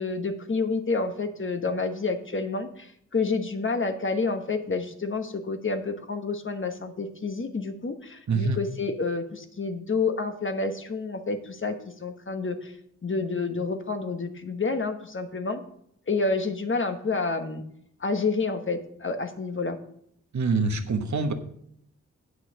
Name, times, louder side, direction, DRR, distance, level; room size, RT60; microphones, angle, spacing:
voice 1, 0.0-12.7 13.0-15.6 16.1-17.6 18.0-19.8, left 4 dB, 40° left, 7 dB, 1.2 m, -29 dB
voice 2, 8.3-8.6 20.3-21.3, right 4 dB, 65° right, 6 dB, 1.2 m, -25 dB
8.4 x 6.4 x 6.4 m, 0.69 s
cardioid pair, 60°, 30 cm